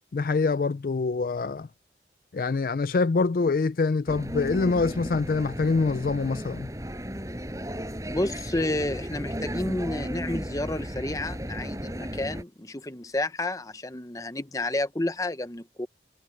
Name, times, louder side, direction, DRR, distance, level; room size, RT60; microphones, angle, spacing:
voice 1, 0.1-1.7 2.3-6.7, left 4 dB, 50° left, 0.4 m, -25 dB
sound 1, 4.1-12.4, equal, 20° right, 6.7 m, -35 dB
voice 2, 8.1-15.9, left 1 dB, 20° left, 0.8 m, -30 dB
head